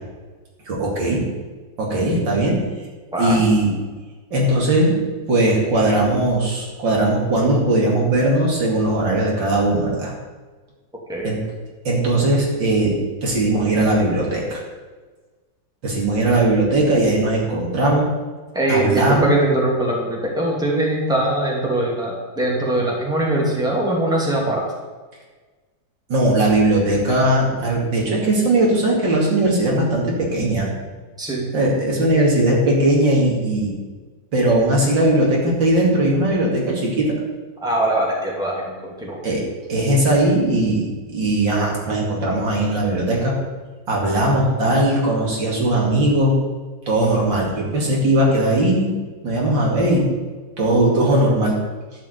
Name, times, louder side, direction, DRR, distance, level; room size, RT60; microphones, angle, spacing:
voice 1, 0.7-1.2 1.8-2.6 3.2-3.7 4.3-5.0 5.3-10.1 11.2-11.4 11.8-14.6 15.8-18.1 18.7-19.3 26.1-30.7 31.5-33.7 34.3-37.1 39.2-39.4 39.7-43.4 43.9-46.4 46.9-48.9 49.2-50.1 50.6-51.6, right 1 dB, 70° right, -2 dB, 3.3 m, -19 dB
voice 2, 3.1-3.4 11.1-11.3 18.5-24.6 31.2-31.5 37.6-39.2, right 1 dB, ahead, -3 dB, 2.5 m, -21 dB
11.5 x 5.5 x 8.3 m, 1.3 s
omnidirectional pair, 2.1 m